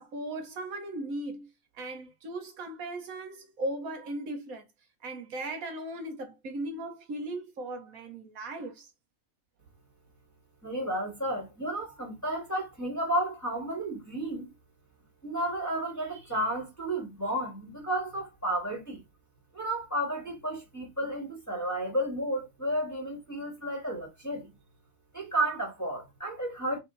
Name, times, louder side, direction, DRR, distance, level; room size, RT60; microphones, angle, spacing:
voice 1, 0.0-1.5 1.7-4.7 5.0-8.9, right 1 dB, 75° right, 1.4 m, -37 dB
voice 2, 10.6-14.5 15.2-19.0 19.5-24.5 25.1-26.8, right 1 dB, 10° left, 1.9 m, -32 dB
4.3 x 3.1 x 3.8 m
omnidirectional pair, 1.5 m